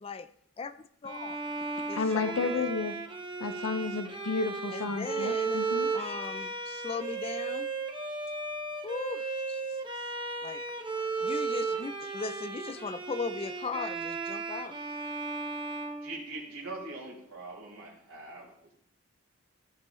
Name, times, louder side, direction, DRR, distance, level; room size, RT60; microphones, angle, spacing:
voice 1, 1.0-1.4 1.9-2.6 4.7-5.6 5.9-7.7 8.8-9.6 10.4-10.6 11.2-14.7, left 4 dB, 25° left, 12 dB, 0.3 m, -38 dB
Bowed string instrument, 1.1-16.8, right 4 dB, 20° right, 0.9 m, -35 dB
voice 2, 1.9-2.9 3.4-5.9 6.3-6.5, left 4 dB, 80° left, 8 dB, 0.6 m, -32 dB
voice 3, 16.0-18.7, right 2 dB, 75° right, -5 dB, 3.9 m, -43 dB
15.0 x 8.4 x 3.1 m, 0.70 s
head